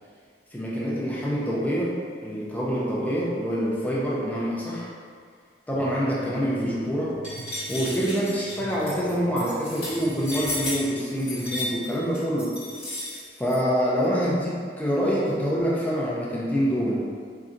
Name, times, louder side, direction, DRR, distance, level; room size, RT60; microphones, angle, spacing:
voice 1, 0.5-4.9 5.7-7.2 7.7-12.6 13.4-17.1, equal, 10° left, -6 dB, 0.4 m, -26 dB
sound 1, 5.7-11.7, right 4 dB, 55° left, 1.0 m, -48 dB
sound 2, 6.4-9.7, right 3 dB, 65° right, 0.3 m, -45 dB
sound 3, 7.2-13.6, left 1 dB, 30° left, 1.0 m, -34 dB
3.8 x 2.2 x 2.5 m, 2.1 s
head